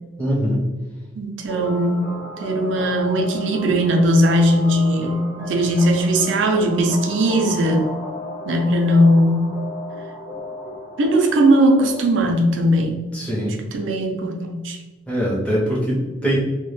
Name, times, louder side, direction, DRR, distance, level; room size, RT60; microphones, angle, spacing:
voice 1, 0.2-0.7 13.1-13.5 15.1-16.4, equal, 5° left, -6 dB, 0.6 m, -22 dB
voice 2, 1.2-8.0 8.5-9.5 11.0-13.0 13.7-14.8, equal, 75° right, 3 dB, 0.4 m, -18 dB
sound 1, 1.5-12.1, left 1 dB, 45° left, 0.7 m, -34 dB
2.2 x 2.0 x 3.0 m, 1.2 s
head